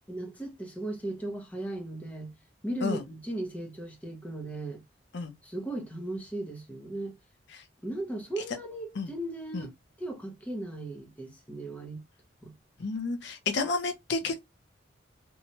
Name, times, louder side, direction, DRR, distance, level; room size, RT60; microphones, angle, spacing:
voice 1, 0.1-2.3 2.6-4.8 5.4-7.2 7.8-9.7 10.0-12.0 12.4-12.5, right 1 dB, 10° left, 0.6 m, -37 dB
voice 2, 12.8-14.4, left 4 dB, 65° left, 0.6 m, -30 dB
2.7 x 2.2 x 2.9 m
head